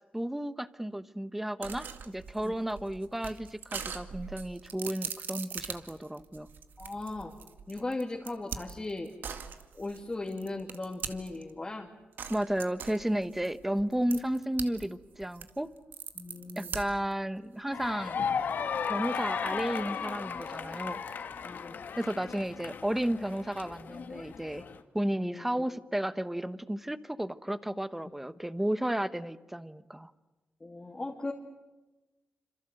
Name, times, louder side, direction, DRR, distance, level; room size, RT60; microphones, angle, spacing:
voice 1, 0.1-6.5 12.3-15.7 16.6-18.2 18.9-21.0 22.0-24.6 24.9-30.1, right 1 dB, 5° right, 13 dB, 1.1 m, -33 dB
sound 1, 1.6-11.5 12.2-14.9 15.1-17.1, right 6 dB, 75° right, 2.1 m, -41 dB
voice 2, 6.8-7.3 7.7-9.1 9.7-11.9 16.1-16.7 21.4-21.7 25.2-25.6 30.6-31.3, left 2 dB, 20° left, 0 dB, 2.7 m, -38 dB
sound 2, 17.7-24.8, left 6 dB, 70° left, 2.0 m, -35 dB
27.5 x 27.0 x 7.9 m, 1.1 s
wide cardioid pair, 120°, 3 cm